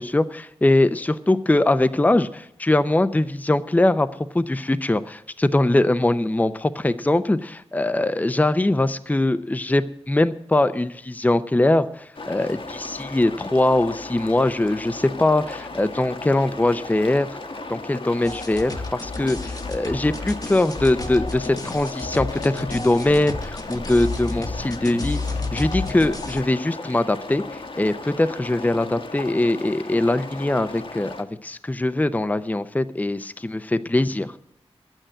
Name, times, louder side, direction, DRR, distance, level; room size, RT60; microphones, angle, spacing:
voice 1, 0.0-4.1 4.3-17.3 17.7-25.2 25.5-34.3, left 2 dB, 15° left, 12 dB, 0.6 m, -22 dB
sound 1, 12.2-31.2, left 3 dB, 55° left, 1.2 m, -36 dB
sound 2, 18.2-26.4, left 3 dB, 35° left, 0.9 m, -31 dB
11.5 x 9.1 x 7.5 m, 0.73 s
wide cardioid pair, 75°, 11 cm